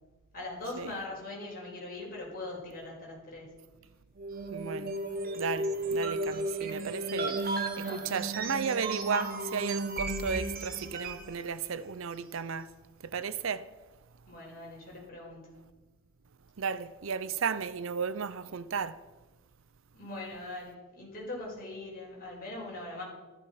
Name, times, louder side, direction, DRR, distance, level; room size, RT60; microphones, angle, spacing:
voice 1, 0.3-3.5 7.8-8.1 8.4-8.5 14.3-15.5 19.9-23.0, left 2 dB, 45° left, 5.7 m, -41 dB
sound 1, 4.2-11.3, right 2 dB, 45° right, 1.5 m, -34 dB
voice 2, 4.5-5.0 5.3-12.7 13.0-13.7 16.6-19.0, right 6 dB, 65° right, 0.6 m, -34 dB
13.5 x 13.0 x 5.8 m
head